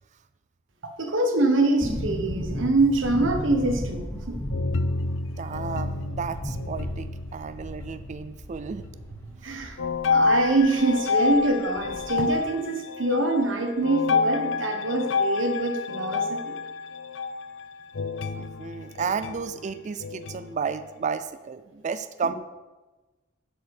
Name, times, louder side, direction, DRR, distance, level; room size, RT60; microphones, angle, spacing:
voice 1, 1.0-4.4 9.4-9.8 10.1-16.6 22.3-22.4, right 2 dB, 70° right, 5 dB, 1.2 m, -24 dB
sound 1, 1.8-10.6 10.9-11.0 11.3-12.3 12.6-12.7, equal, 10° left, 1.0 m, -35 dB
sound 2, 4.5-8.3 8.6-9.3 9.8-21.1, left 4 dB, 65° left, 0.5 m, -29 dB
voice 2, 5.4-9.6 18.4-22.3, right 6 dB, 40° right, 12 dB, 0.4 m, -33 dB
7.5 x 5.1 x 7.0 m, 1.2 s
head